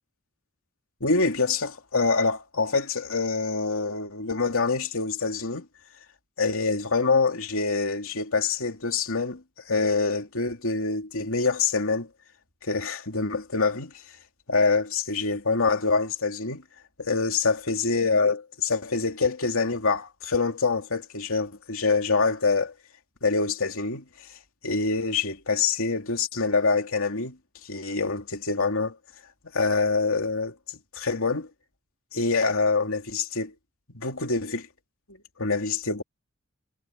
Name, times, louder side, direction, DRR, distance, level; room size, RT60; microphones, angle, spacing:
voice 1, 1.0-5.7 6.4-12.1 12.6-13.9 14.5-16.6 17.0-22.7 23.2-24.1 24.6-27.4 27.6-29.0 29.5-30.6 30.9-31.5 32.1-33.5 33.9-34.7 35.4-36.0, left 4 dB, 65° left, 3.1 m, -25 dB
head